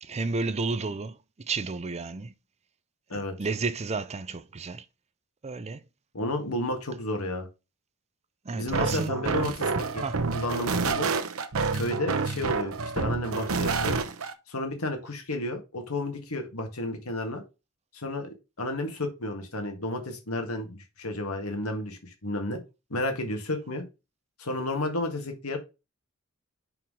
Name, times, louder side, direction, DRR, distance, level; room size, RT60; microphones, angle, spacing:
voice 1, 0.0-2.3 3.1-4.8 5.4-5.8 8.4-9.1 10.0-10.2, right 4 dB, 30° right, 0.5 m, -32 dB
voice 2, 6.1-7.5 8.5-10.0 10.3-11.1 11.7-14.0 14.5-17.4 17.9-18.3 18.6-22.6 22.9-23.8 24.4-25.6, left 1 dB, 85° left, 1.9 m, -32 dB
sound 1, 8.7-14.3, right 4 dB, 70° right, 0.8 m, -28 dB
5.7 x 4.7 x 4.8 m
head